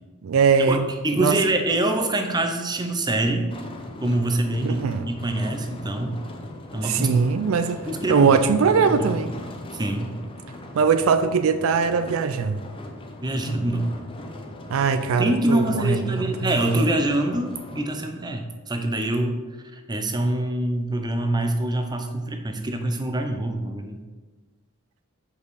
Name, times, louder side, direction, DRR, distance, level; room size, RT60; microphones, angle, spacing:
voice 1, 0.2-0.9 1.2-1.4 4.6-5.1 6.8-7.8 8.1-9.3 10.8-12.6 14.7-16.5, right 5 dB, 70° right, 0.4 m, -21 dB
voice 2, 1.0-3.5 4.0-6.2 6.7-7.2 7.8-9.1 9.7-10.2 13.2-13.9 15.2-19.4 19.7-24.0, right 1 dB, 20° right, 0.7 m, -25 dB
sound 1, 3.5-17.9, left 1 dB, 25° left, 0.7 m, -39 dB
6.8 x 5.2 x 4.8 m
head